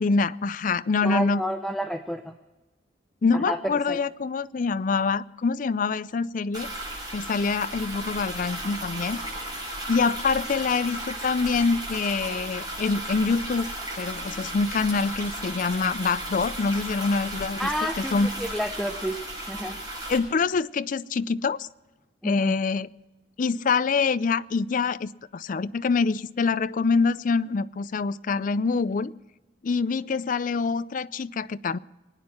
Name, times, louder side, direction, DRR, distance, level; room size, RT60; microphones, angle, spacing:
voice 1, 0.0-1.4 3.2-6.7 7.1-9.2 9.9-13.7 14.0-17.6 18.0-18.3 20.1-21.7 22.2-22.9 23.4-29.1 29.6-31.8, left 4 dB, 45° left, 16 dB, 0.4 m, -25 dB
voice 2, 1.0-2.3 3.3-3.6 3.9-4.0 17.6-19.2 19.5-19.8 22.2-22.5, equal, ahead, 6 dB, 0.6 m, -30 dB
sound 1, 6.5-20.2, right 1 dB, 20° right, 6.9 m, -35 dB
24.0 x 9.6 x 5.8 m, 1.1 s
head